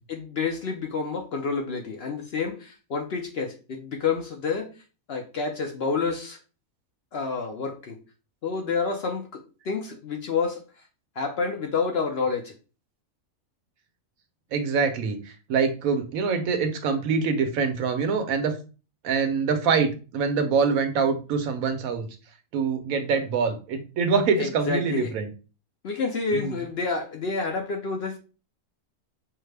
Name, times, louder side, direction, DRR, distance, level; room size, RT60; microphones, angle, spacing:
voice 1, 0.1-4.7 5.1-6.4 7.1-8.0 8.4-10.6 11.2-12.5 24.4-25.1 25.8-28.2, left 4 dB, 60° left, 3 dB, 0.7 m, -29 dB
voice 2, 14.5-18.6 19.0-22.1 22.5-25.3 26.3-26.6, right 5 dB, 80° right, 7 dB, 1.1 m, -25 dB
5.6 x 2.1 x 3.3 m, 0.34 s
omnidirectional pair, 1.5 m